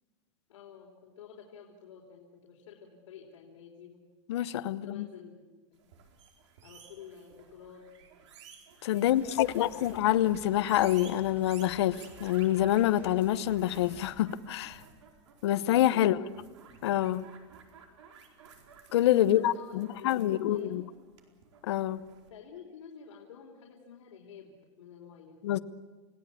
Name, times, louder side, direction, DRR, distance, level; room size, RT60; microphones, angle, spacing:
voice 1, 0.5-4.0 4.7-5.4 5.7-5.9 6.6-8.1 8.9-9.9 15.8-16.5 19.2-20.8 22.3-25.4, left 7 dB, 85° left, 4.3 m, -50 dB
voice 2, 4.3-5.1 8.8-14.8 15.4-16.2 16.8-17.3 18.9-20.8 21.7-22.0 25.4-25.6, left 13 dB, 60° left, 0.9 m, -26 dB
sound 1, 5.8-22.3, right 6 dB, 70° right, 4.5 m, -54 dB
sound 2, 9.0-14.2, equal, 10° right, 2.6 m, -54 dB
29.5 x 17.0 x 8.5 m
supercardioid pair, 180°, 16 cm